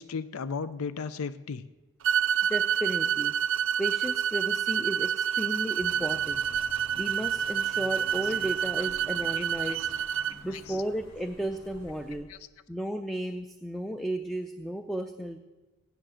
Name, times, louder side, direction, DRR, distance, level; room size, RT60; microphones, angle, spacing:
voice 1, 0.0-1.6 8.2-8.3 8.8-8.9 9.5-9.9 10.5-10.8, left 5 dB, 90° left, 14 dB, 0.5 m, -36 dB
sound 1, 2.0-10.4, right 9 dB, 60° right, 0.4 m, -28 dB
voice 2, 2.5-3.4 3.8-6.4 6.9-9.9 10.3-12.3 12.7-15.4, right 1 dB, ahead, 7 dB, 0.4 m, -34 dB
sound 2, 5.8-12.2, equal, 70° left, 4.3 m, -50 dB
16.0 x 10.0 x 6.3 m, 1.2 s
head